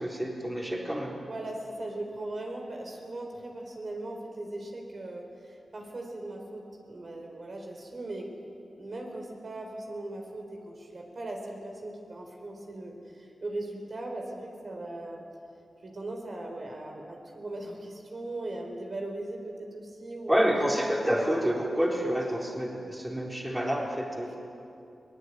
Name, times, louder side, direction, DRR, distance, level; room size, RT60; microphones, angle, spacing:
voice 1, 0.0-1.2 20.3-24.4, equal, 10° right, -2 dB, 3.9 m, -28 dB
voice 2, 1.3-5.3 5.7-6.6 6.9-8.3 8.8-15.3 15.8-20.5 24.3-24.4, right 2 dB, 50° right, 1 dB, 4.2 m, -39 dB
22.5 x 19.0 x 9.6 m, 2.7 s
wide cardioid pair, 80°, 0 cm